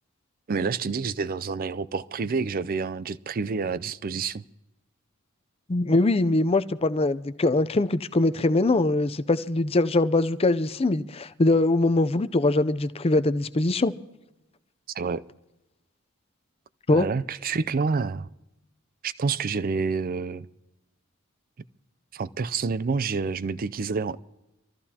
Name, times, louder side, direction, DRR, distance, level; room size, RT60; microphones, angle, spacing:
voice 1, 0.5-4.4 14.9-15.2 16.9-18.3 19.0-20.5 22.1-24.2, right 4 dB, 45° right, 0.4 m, -28 dB
voice 2, 5.7-13.9 16.9-17.1, left 2 dB, 30° left, 0.5 m, -22 dB
25.5 x 14.5 x 2.8 m
head